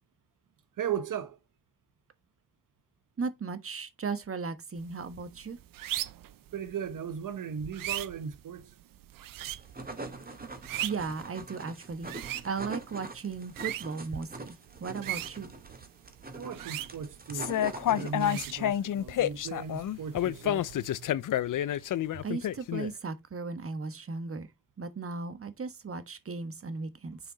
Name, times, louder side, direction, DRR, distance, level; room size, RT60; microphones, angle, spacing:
voice 1, 0.8-1.4 6.5-8.7 16.3-17.6 17.9-20.6, right 7 dB, 70° right, 1.1 m, -37 dB
voice 2, 3.2-5.6 10.8-12.1 12.4-14.5 14.8-15.5 22.2-24.5 24.8-27.2, right 4 dB, 40° right, 1.4 m, -36 dB
sound 1, 4.8-21.1, right 13 dB, 90° right, 0.7 m, -42 dB
sound 2, 9.5-18.6, right 2 dB, 25° right, 2.1 m, -43 dB
sound 3, 17.3-22.9, left 11 dB, 70° left, 0.6 m, -29 dB
6.8 x 4.5 x 4.0 m
cardioid pair, 60°, 33 cm